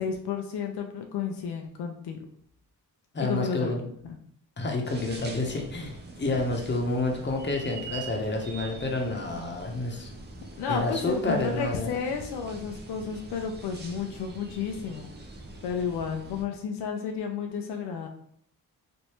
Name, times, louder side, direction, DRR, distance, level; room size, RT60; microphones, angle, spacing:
voice 1, 0.0-2.2 3.2-3.8 4.0-4.2 10.6-15.1 15.6-18.1, left 6 dB, 80° left, 4 dB, 0.5 m, -32 dB
voice 2, 3.1-3.8 4.6-10.1 10.7-11.9, left 2 dB, 30° left, 1 dB, 0.8 m, -29 dB
sound 1, 4.8-16.4, right 3 dB, 25° right, 0.7 m, -44 dB
3.2 x 2.6 x 3.0 m, 0.68 s
cardioid pair, 60°, 39 cm